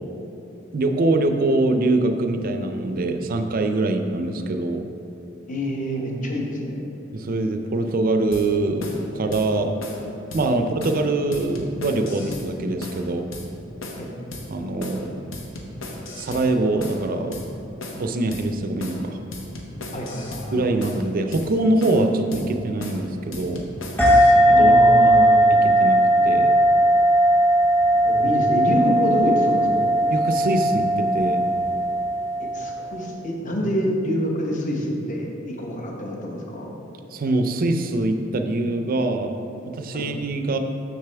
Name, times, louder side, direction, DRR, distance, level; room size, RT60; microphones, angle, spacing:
voice 1, 0.7-4.9 7.1-9.7 10.3-13.3 14.5-15.2 16.2-17.4 17.9-19.2 20.5-23.7 24.5-24.7 25.8-26.5 30.1-31.5 37.1-39.3 39.7-40.6, right 2 dB, 45° right, 6 dB, 0.5 m, -23 dB
voice 2, 5.5-6.8 14.0-14.1 19.9-20.6 24.5-25.4 28.0-29.9 32.4-36.7 39.9-40.0, equal, 40° left, -1 dB, 0.9 m, -26 dB
sound 1, 8.3-8.5 8.8-9.0 9.3-9.5 9.8-10.0 10.3-10.5 10.8-11.0 11.3-12.5 12.8-13.0 13.3-13.5 13.8-14.0 14.3-14.5 14.8-15.0 15.3-16.5 16.8-17.0 17.3-17.5 17.8-18.0 18.3-18.5 18.8-19.0 19.3-20.5 20.8-21.0 21.3-21.5 21.8-22.1 22.3-22.5 22.8-23.0 23.3-24.3, left 2 dB, 80° left, 0.9 m, -36 dB
sound 2, 24.0-33.0, right 1 dB, 10° left, 0.9 m, -18 dB
6.8 x 6.5 x 3.4 m, 2.9 s
head